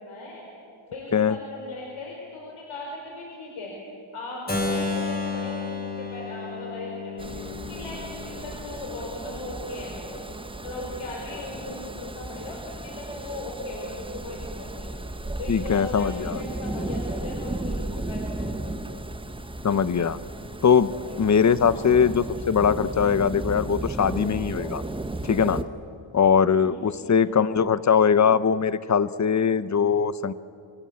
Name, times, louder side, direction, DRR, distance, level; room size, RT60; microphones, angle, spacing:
voice 1, 0.1-0.4 0.9-3.7 4.1-7.4 7.7-10.2 10.6-15.0 15.4-18.8 21.0-21.2 21.7-21.9 26.5-27.3, left 2 dB, 85° left, -1 dB, 4.8 m, -38 dB
Keyboard (musical), 4.5-10.3, left 3 dB, 20° left, 3.7 m, -33 dB
sound 1, 7.2-25.6, right 2 dB, 10° right, 1.0 m, -35 dB
voice 2, 15.5-16.4 19.6-20.2 20.6-24.8 25.2-25.6 26.1-30.3, left 7 dB, 35° left, 15 dB, 0.8 m, -21 dB
28.0 x 24.5 x 8.6 m, 2.6 s
wide cardioid pair, 135°, 48 cm